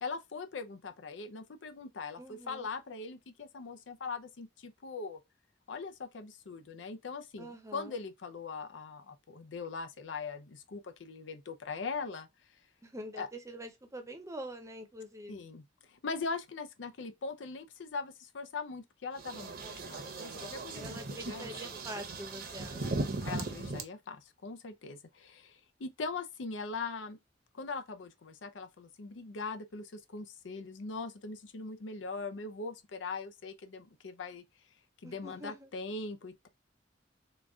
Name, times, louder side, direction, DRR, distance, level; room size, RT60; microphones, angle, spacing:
voice 1, 0.0-5.2 5.7-12.3 13.2-13.3 15.3-21.5 22.7-22.9 23.2-27.2 27.5-34.4 35.0-36.5, left 4 dB, 80° left, 0.6 m, -41 dB
voice 2, 2.2-2.7 7.4-7.9 12.8-15.4 20.7-23.1 35.0-35.7, right 1 dB, 15° right, 0.7 m, -45 dB
sound 1, 19.2-23.8, right 2 dB, 55° right, 0.8 m, -38 dB
3.9 x 2.3 x 3.5 m
head